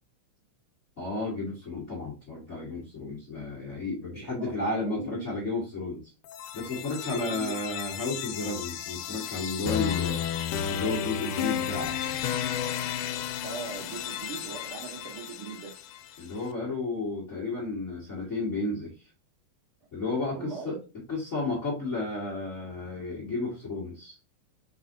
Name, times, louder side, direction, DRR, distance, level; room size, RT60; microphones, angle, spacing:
voice 1, 1.0-6.0 6.5-10.2 10.7-11.9 16.2-18.9 19.9-20.8 21.1-24.2, left 3 dB, 40° left, 1.1 m, -32 dB
voice 2, 4.1-5.3 7.0-7.6 13.4-15.7 20.3-20.8, right 5 dB, 75° right, 1.2 m, -40 dB
sound 1, 6.2-16.2, left 9 dB, 80° left, 2.1 m, -33 dB
4.8 x 4.2 x 2.6 m
omnidirectional pair, 3.8 m